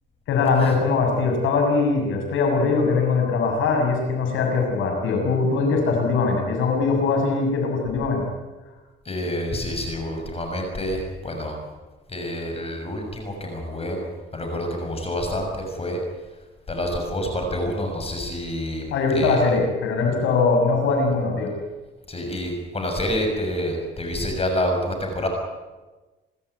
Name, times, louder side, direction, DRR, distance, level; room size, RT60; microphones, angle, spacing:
voice 1, 0.3-8.2 18.9-21.5, left 4 dB, 85° left, 2 dB, 6.8 m, -21 dB
voice 2, 9.1-11.6 12.1-16.0 16.7-18.8 19.1-19.4 22.1-25.3, left 1 dB, 30° left, 3 dB, 6.6 m, -28 dB
27.5 x 13.5 x 9.4 m, 1.2 s
cardioid pair, 90°, 20 cm